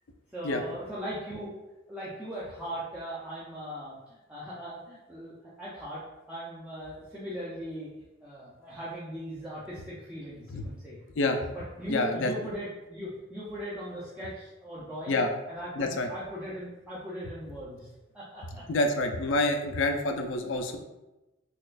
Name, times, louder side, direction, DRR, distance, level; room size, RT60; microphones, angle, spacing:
voice 1, 0.3-1.5 1.9-6.0 6.3-7.9 8.2-11.0 11.5-15.2 15.5-17.9 18.1-18.7 19.3-19.6, equal, 5° right, -9 dB, 0.5 m, -39 dB
voice 2, 11.9-12.3 15.1-15.3 15.8-16.1 18.7-20.8, left 2 dB, 65° left, 5 dB, 0.4 m, -27 dB
4.1 x 2.3 x 2.4 m, 1.0 s
head